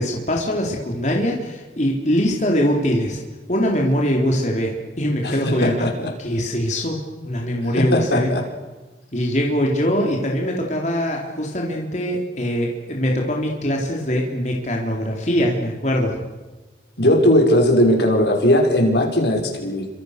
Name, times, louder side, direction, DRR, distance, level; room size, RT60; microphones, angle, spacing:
voice 1, 0.0-3.2 3.5-5.9 6.2-7.0 7.2-8.3 9.1-16.2, equal, 40° left, 0 dB, 3.8 m, -22 dB
voice 2, 5.2-6.1 7.7-8.4 17.0-19.9, left 1 dB, 75° left, 2 dB, 5.8 m, -18 dB
29.5 x 26.0 x 6.7 m, 1.2 s
head